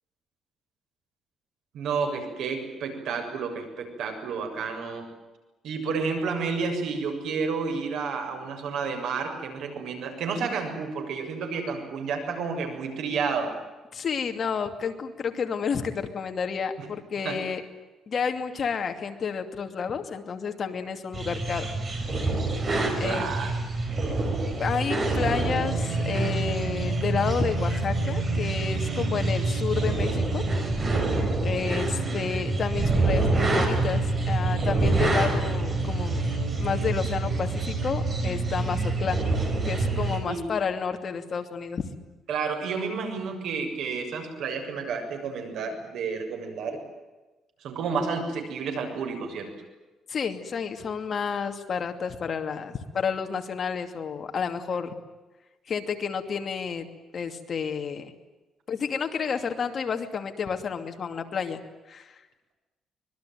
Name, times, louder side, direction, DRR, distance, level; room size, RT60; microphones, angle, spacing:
voice 1, 1.7-5.0 5.6-13.5 17.2-17.4 23.0-23.5 28.8-29.3 31.9-32.4 40.3-40.4 42.3-46.8 47.6-49.5, right 5 dB, 75° right, 5 dB, 7.1 m, -31 dB
voice 2, 13.9-17.6 18.1-21.7 22.0-22.3 23.0-23.4 24.6-30.4 31.4-36.2 36.6-39.2 39.7-41.8 50.1-54.9 55.7-56.9 57.1-58.1 58.7-61.6 61.9-62.2, left 6 dB, 40° left, 6 dB, 2.6 m, -30 dB
sound 1, 21.1-40.2, right 2 dB, 30° right, 5.1 m, -26 dB
25.0 x 21.5 x 9.3 m, 1.1 s
cardioid pair, 145°, 0 cm